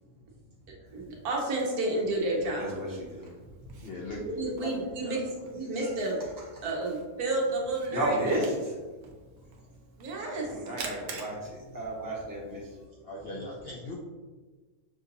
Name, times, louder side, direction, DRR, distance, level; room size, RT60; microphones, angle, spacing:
Camera, 0.9-12.9, right 4 dB, 60° right, 0.8 m, -49 dB
voice 1, 0.9-2.7 4.2-5.2 5.5-6.2 6.6-8.2 10.0-10.5, right 2 dB, 80° right, -1 dB, 1.4 m, -30 dB
voice 2, 2.6-3.0 5.7-5.9 6.4-6.5 7.9-8.5 10.4-12.6, right 1 dB, 15° right, -5 dB, 0.9 m, -32 dB
voice 3, 3.8-5.7 13.0-13.9, left 2 dB, 60° left, -3 dB, 0.6 m, -41 dB
6.1 x 2.6 x 2.7 m, 1.3 s
omnidirectional pair, 1.6 m